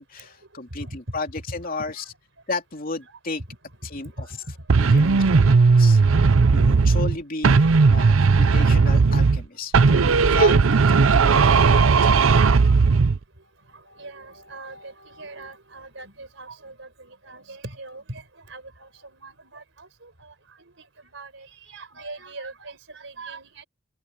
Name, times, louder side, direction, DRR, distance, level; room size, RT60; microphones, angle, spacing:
voice 1, 0.0-2.0 2.5-3.4 3.9-4.3 4.8-5.2 5.5-11.8, left 3 dB, 45° left, 3.1 m, -33 dB
voice 2, 1.6-2.0 3.1-3.2 3.9-5.1 6.7-7.0 7.5-7.7 8.0-8.3 10.0-10.1 10.4-10.6 11.1-11.4 11.8-13.0 13.4-20.9 21.1-23.6, right 2 dB, 65° right, 5.0 m, -42 dB
sound 1, 4.7-7.2 7.4-9.5 9.7-13.2, right 4 dB, 90° right, 0.6 m, -16 dB
head